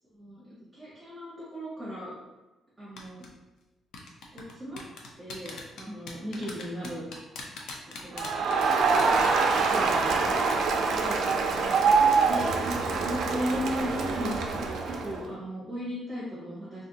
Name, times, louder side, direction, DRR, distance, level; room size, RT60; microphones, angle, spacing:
voice 1, 0.2-2.2 2.8-3.2 4.3-4.8 5.2-7.0 8.0-8.3 9.5-10.4 10.9-11.2 11.5-16.8, equal, 10° right, -9 dB, 1.0 m, -37 dB
sound 1, 3.0-3.3 3.9-10.2 10.5-10.7 11.0-11.1 11.6-11.9 12.1-12.4 12.7-12.9, left 4 dB, 80° left, 0.6 m, -41 dB
Crowd, 8.2-15.2, right 4 dB, 65° right, 0.4 m, -25 dB
2.7 x 2.6 x 3.8 m, 1.1 s
cardioid pair, 130°, 0 cm